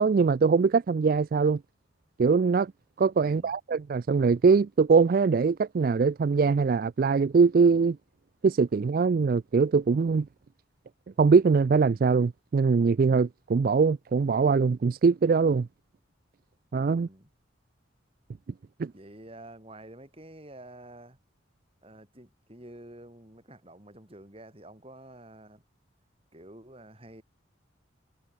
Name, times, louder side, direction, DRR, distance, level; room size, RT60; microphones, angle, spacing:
voice 1, 0.0-1.6 2.2-2.7 3.0-8.0 8.4-10.3 11.2-15.7 16.7-17.1 18.8-18.9, right 5 dB, 45° right, 0.3 m, -22 dB
voice 2, 3.2-3.6 16.8-17.3 18.9-21.2 21.8-25.6 26.3-27.2, right 1 dB, 30° right, 4.2 m, -49 dB
head